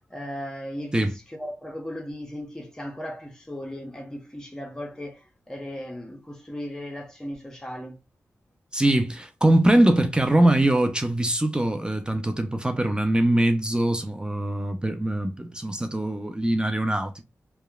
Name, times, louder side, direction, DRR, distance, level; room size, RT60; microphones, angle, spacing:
voice 1, 0.1-8.0, equal, 10° left, 0.8 m, -37 dB
voice 2, 8.7-17.1, right 1 dB, 15° right, 0.5 m, -22 dB
2.8 x 2.1 x 2.3 m
cardioid pair, 50°, 6 cm